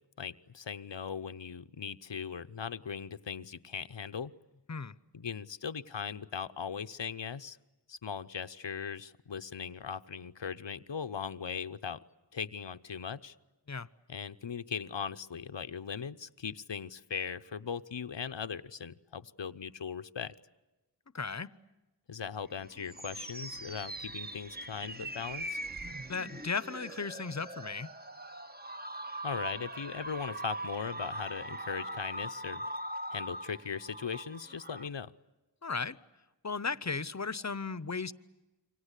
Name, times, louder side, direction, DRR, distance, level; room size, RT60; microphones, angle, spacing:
voice 1, 0.2-4.3 5.1-7.6 7.9-12.0 12.3-13.3 14.1-20.3 22.1-25.6 29.2-32.6 33.1-35.1, left 6 dB, 80° left, 11 dB, 0.8 m, -39 dB
voice 2, 21.1-21.5 26.1-27.9 35.6-36.0 36.4-38.1, left 4 dB, 40° left, 18 dB, 0.8 m, -35 dB
sound 1, 22.5-34.9, right 1 dB, 20° right, 1.1 m, -41 dB
28.0 x 25.0 x 8.3 m, 1.1 s
wide cardioid pair, 45°, 43 cm